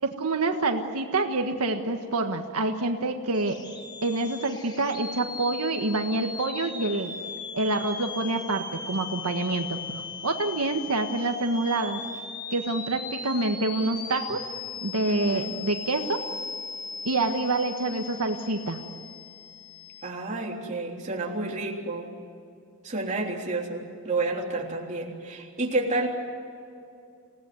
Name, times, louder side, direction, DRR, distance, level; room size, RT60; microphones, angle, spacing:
voice 1, 0.0-3.6 4.0-7.1 7.5-9.8 10.2-12.0 12.5-14.4 14.8-16.2 17.0-18.8, right 2 dB, 90° right, 4 dB, 1.5 m, -27 dB
sound 1, 3.3-20.1, left 5 dB, 20° left, 1.6 m, -38 dB
voice 2, 15.1-15.5 20.0-22.1 22.8-26.1, right 2 dB, 35° right, -1 dB, 3.6 m, -30 dB
27.0 x 17.5 x 9.7 m, 2.5 s
head